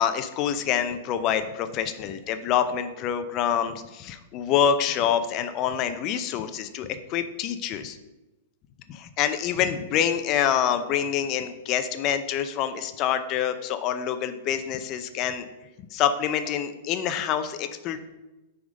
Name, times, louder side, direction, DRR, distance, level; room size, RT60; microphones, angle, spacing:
voice 1, 0.0-8.0 8.9-15.5 15.9-18.0, left 9 dB, 40° left, 10 dB, 0.5 m, -26 dB
6.2 x 3.6 x 5.1 m, 1.1 s
hypercardioid pair, 125°, 0 cm